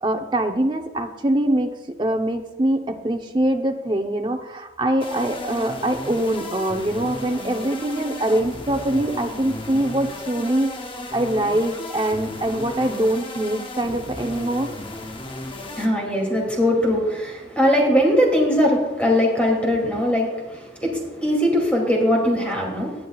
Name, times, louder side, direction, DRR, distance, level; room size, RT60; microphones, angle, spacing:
voice 1, 0.0-10.8 11.1-14.7, right 1 dB, 25° right, 4 dB, 0.7 m, -23 dB
sound 1, 5.0-15.9, left 2 dB, 25° left, 0.9 m, -35 dB
voice 2, 15.6-23.1, equal, 5° left, -2 dB, 2.6 m, -21 dB
18.5 x 9.1 x 2.4 m, 1.1 s
head